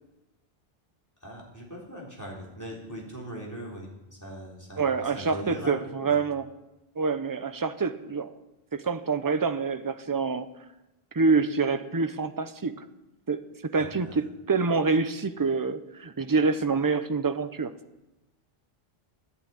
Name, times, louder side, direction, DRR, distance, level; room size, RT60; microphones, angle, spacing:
voice 1, 1.2-3.9 4.2-6.2 13.8-14.2, equal, 15° left, -3 dB, 3.9 m, -40 dB
voice 2, 4.8-6.5 7.0-8.3 8.7-10.5 11.1-12.8 13.3-17.7, right 4 dB, 25° right, 10 dB, 0.6 m, -26 dB
12.0 x 10.5 x 9.1 m, 0.98 s
omnidirectional pair, 1.0 m